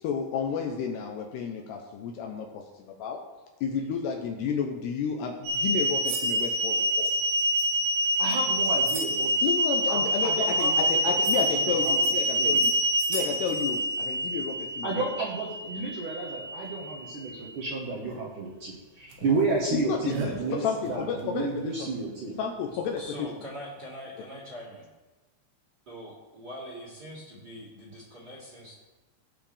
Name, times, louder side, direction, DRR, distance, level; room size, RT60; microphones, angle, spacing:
voice 1, 0.0-3.2 3.6-7.1 9.4-12.7 13.1-15.1 19.7-21.9 22.4-23.3, left 6 dB, 75° left, 2 dB, 2.6 m, -31 dB
sound 1, 5.5-17.4 18.2-18.3 19.1-19.2 20.1-20.3 23.0-23.1, right 1 dB, 90° right, 4.0 m, -27 dB
voice 2, 8.2-9.3 9.9-11.1 11.6-12.6 14.8-22.3, right 3 dB, 60° right, -5 dB, 2.4 m, -32 dB
voice 3, 23.0-24.9 25.9-28.7, equal, 30° right, -5 dB, 2.3 m, -42 dB
17.5 x 7.5 x 3.4 m, 1.1 s
omnidirectional pair, 5.3 m